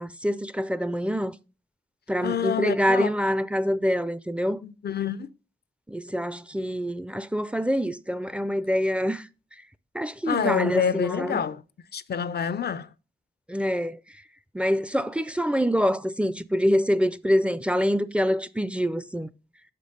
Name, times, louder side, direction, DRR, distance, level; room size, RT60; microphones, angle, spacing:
voice 1, 0.0-1.3 2.1-4.6 5.9-9.3 9.9-11.4 13.5-14.0 14.5-19.3, equal, 5° right, 0.4 m, -25 dB
voice 2, 2.2-3.1 4.6-5.3 10.3-11.6 11.9-12.9, left 7 dB, 70° left, 0.4 m, -27 dB
6.1 x 5.2 x 5.4 m
wide cardioid pair, 70°, 17 cm